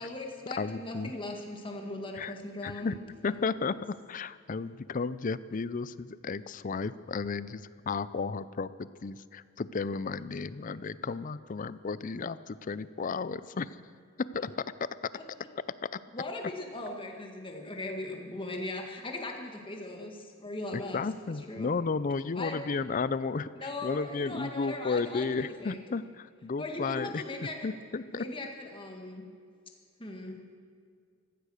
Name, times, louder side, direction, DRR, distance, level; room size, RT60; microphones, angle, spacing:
voice 1, 0.0-3.5 15.1-15.2 16.1-21.7 22.4-22.6 23.6-25.8 26.6-27.6 28.1-29.2 30.0-30.4, left 2 dB, 25° left, 2 dB, 1.9 m, -39 dB
voice 2, 0.6-1.1 2.1-2.3 2.6-3.0 3.2-13.7 14.3-14.5 14.8-14.9 20.7-27.2 27.6-28.2, left 4 dB, 40° left, 16 dB, 0.5 m, -33 dB
15.0 x 15.0 x 6.4 m, 2.1 s
head